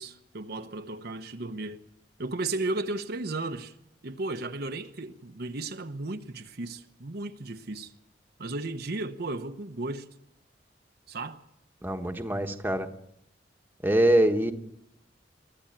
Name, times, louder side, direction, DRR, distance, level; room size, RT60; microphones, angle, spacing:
voice 1, 0.0-1.8 2.2-3.7 4.0-7.9 8.4-10.1 11.1-11.4, right 2 dB, 60° right, 1.0 m, -34 dB
voice 2, 11.8-12.9 13.8-14.5, right 1 dB, 10° right, 1.4 m, -24 dB
23.5 x 13.5 x 8.9 m
head